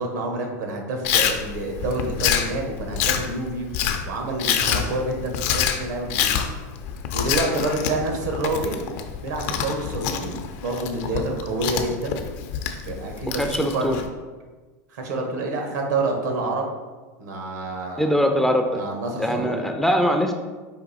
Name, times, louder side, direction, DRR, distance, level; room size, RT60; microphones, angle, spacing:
voice 1, 0.0-3.7 4.0-6.3 7.1-8.8 9.2-12.2 12.8-14.0 14.9-16.7 17.2-18.1 18.7-19.7, right 2 dB, 85° right, 2 dB, 1.1 m, -28 dB
Chewing mastication, 1.0-14.1, left 8 dB, 60° left, 0.5 m, -27 dB
voice 2, 13.3-14.0 18.0-18.8 19.2-20.3, equal, 5° left, 4 dB, 0.3 m, -22 dB
5.0 x 2.6 x 4.0 m, 1.3 s
supercardioid pair, 130°, 9 cm